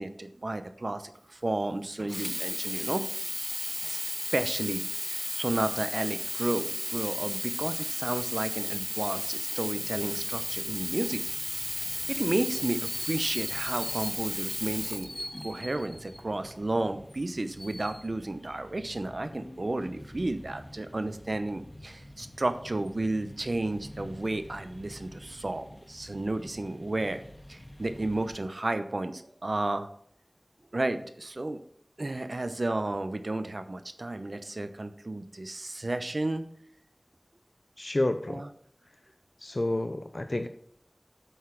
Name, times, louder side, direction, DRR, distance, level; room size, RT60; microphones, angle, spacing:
voice 1, 0.0-3.0 3.8-4.0 4.3-11.2 11.8-27.2 27.5-29.9 30.7-31.6 32.0-36.4 38.3-38.4, right 2 dB, 85° right, 10 dB, 0.7 m, -32 dB
Sink (filling or washing), 2.0-15.8 16.5-16.6, equal, 5° left, 0.7 m, -34 dB
sound 1, 9.6-28.4, left 1 dB, 45° left, 1.6 m, -47 dB
voice 2, 37.8-38.4 38.8-38.9 39.4-40.5, left 1 dB, 65° left, 8 dB, 0.5 m, -30 dB
8.2 x 5.9 x 5.9 m, 0.65 s
wide cardioid pair, 40°, 0 cm